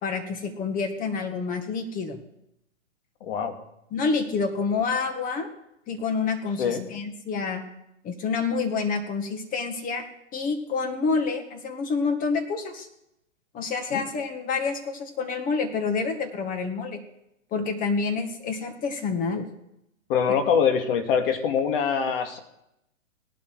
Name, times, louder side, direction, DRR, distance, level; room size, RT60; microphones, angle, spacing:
voice 1, 0.0-2.2 3.9-5.5 5.9-7.6 8.0-10.0 10.3-12.9 13.5-17.0 17.5-19.5, left 4 dB, 20° left, 6 dB, 1.9 m, -28 dB
voice 2, 3.2-3.5 6.6-6.9 13.9-14.0 20.1-22.4, left 7 dB, 45° left, 5 dB, 2.3 m, -24 dB
17.5 x 11.5 x 4.8 m, 0.83 s
hypercardioid pair, 130°, 38 cm